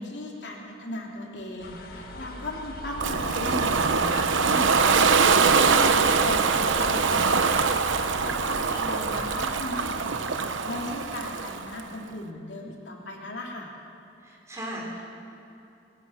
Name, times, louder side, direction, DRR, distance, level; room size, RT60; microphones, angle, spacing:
voice 1, 0.0-13.7, left 1 dB, 65° left, 0 dB, 2.9 m, -37 dB
sound 1, 1.6-10.0, left 1 dB, 50° left, 1.9 m, -41 dB
Ocean, 3.0-11.8, right 5 dB, 85° right, 1.0 m, -23 dB
voice 2, 14.2-15.0, equal, 15° right, -3 dB, 4.7 m, -37 dB
22.5 x 21.0 x 6.4 m, 2.9 s
head